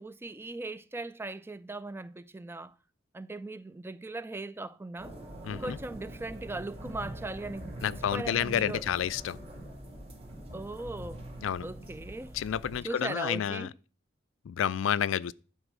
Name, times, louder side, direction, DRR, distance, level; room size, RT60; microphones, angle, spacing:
voice 1, 0.0-2.8 3.1-5.1 5.5-8.9 10.5-11.3 11.6-12.4 12.8-13.7, right 2 dB, 10° right, 0.3 m, -39 dB
sound 1, 5.0-12.8, right 1 dB, 30° right, 2.3 m, -44 dB
voice 2, 5.4-5.8 7.8-9.4 11.4-11.7 12.3-13.7 14.5-15.3, left 9 dB, 75° left, 0.4 m, -30 dB
11.0 x 4.5 x 6.1 m
head